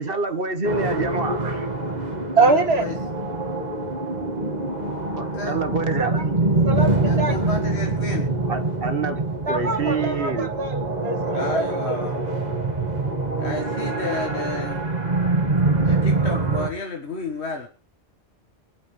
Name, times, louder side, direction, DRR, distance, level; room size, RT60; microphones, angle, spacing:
voice 1, 0.0-1.7 5.2-6.2 8.5-9.2 9.5-10.5, right 4 dB, 60° right, 1.6 m, -27 dB
sound 1, 0.6-16.7, right 2 dB, 40° right, 2.2 m, -24 dB
voice 2, 2.4-2.9 6.0-6.3 6.6-7.3 9.5-12.0, right 3 dB, 75° right, 2.4 m, -24 dB
voice 3, 7.1-8.2 11.3-12.2 13.4-14.8 15.9-17.7, left 3 dB, 85° left, 2.1 m, -31 dB
26.5 x 9.3 x 3.4 m
omnidirectional pair, 1.1 m